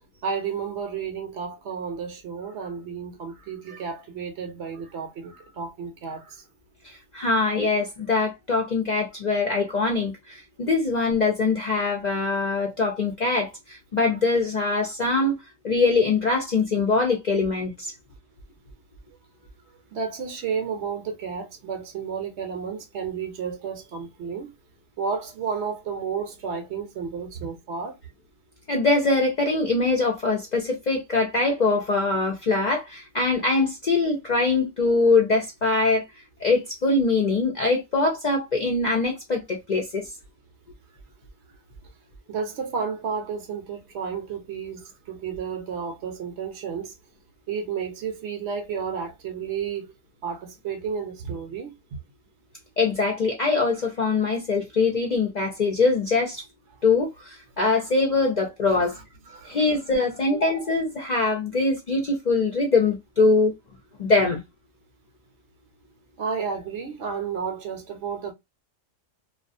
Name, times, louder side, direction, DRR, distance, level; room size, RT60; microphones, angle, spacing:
voice 1, 0.2-6.4 19.9-24.5 25.0-28.0 42.3-46.9 47.5-49.9 50.2-51.7 59.3-59.8 66.2-68.3, right 6 dB, 65° right, 0.8 m, -32 dB
voice 2, 7.1-15.3 15.6-17.9 28.7-36.0 36.4-40.1 52.8-56.4 56.8-59.0 59.5-63.5 64.0-64.4, left 3 dB, 50° left, 0.5 m, -23 dB
2.3 x 2.3 x 2.4 m
omnidirectional pair, 1.3 m